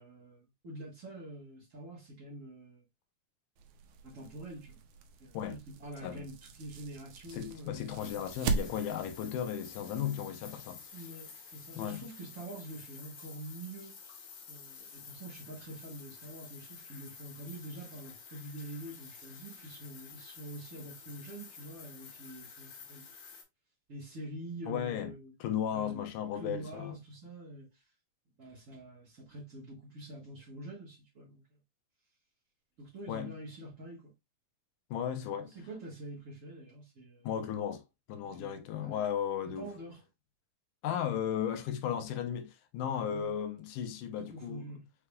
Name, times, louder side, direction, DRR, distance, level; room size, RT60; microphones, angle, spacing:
voice 1, 0.0-2.8 4.0-4.8 5.2-7.9 10.9-13.9 14.5-23.1 23.9-25.3 25.7-26.0 26.3-27.8 28.4-31.4 32.8-34.1 35.4-37.3 38.4-38.5 38.8-39.0 39.6-40.0 43.1-43.3 44.2-44.9, right 1 dB, 55° right, 0.9 m, -46 dB
sound 1, 3.6-9.2, right 4 dB, 80° right, 2.0 m, -39 dB
voice 2, 7.3-10.8 11.8-12.1 24.7-25.1 25.4-26.9 33.1-33.3 34.9-35.5 37.2-37.8 38.1-39.7 40.8-44.7, left 9 dB, 85° left, 2.3 m, -35 dB
sound 2, 8.0-23.4, left 6 dB, 60° left, 2.2 m, -51 dB
5.7 x 3.5 x 2.3 m
omnidirectional pair, 3.7 m